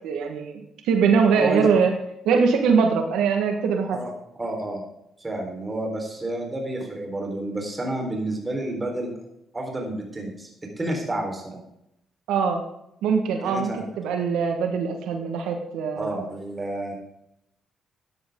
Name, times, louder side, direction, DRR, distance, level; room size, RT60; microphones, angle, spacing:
voice 1, 0.0-1.9 2.2-4.0 12.3-12.6 13.0-16.2, right 5 dB, 90° right, 4 dB, 1.5 m, -22 dB
voice 2, 1.3-1.6 3.9-4.1 4.4-4.8 5.2-9.1 9.5-10.5 10.8-11.6 13.4-13.8 16.0-16.9, right 1 dB, 20° right, 1 dB, 4.2 m, -30 dB
14.5 x 9.9 x 3.8 m, 0.80 s
cardioid pair, 90°, 0 cm